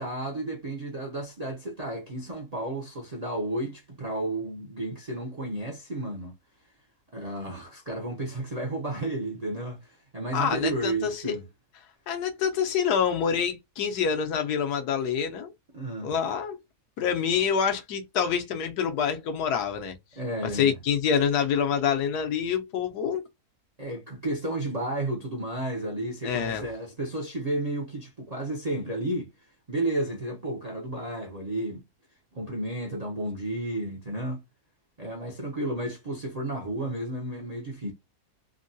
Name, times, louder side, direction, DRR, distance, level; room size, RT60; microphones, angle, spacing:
voice 1, 0.0-6.3 7.1-11.4 15.7-16.1 20.2-20.7 23.8-31.8 32.3-34.4 35.0-37.9, right 1 dB, 50° right, 0.5 m, -32 dB
voice 2, 10.3-11.4 12.1-15.5 16.0-16.6 17.0-20.0 20.4-23.2 26.2-26.6, left 7 dB, 80° left, 1.3 m, -26 dB
3.5 x 2.2 x 2.5 m
omnidirectional pair, 1.7 m